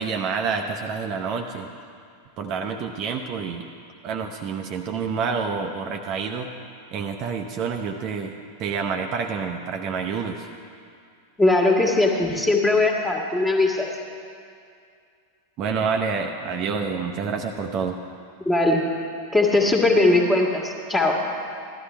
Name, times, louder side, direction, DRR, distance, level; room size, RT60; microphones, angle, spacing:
voice 1, 0.0-1.7 2.4-3.7 4.0-6.5 6.9-8.3 8.6-10.5 15.6-18.0, right 5 dB, 35° right, 3 dB, 0.7 m, -28 dB
voice 2, 11.4-13.9 18.4-18.9 19.3-21.2, left 2 dB, 10° left, 0 dB, 1.7 m, -20 dB
16.5 x 12.5 x 3.4 m, 2.3 s
figure-of-eight pair, 90°, 0 cm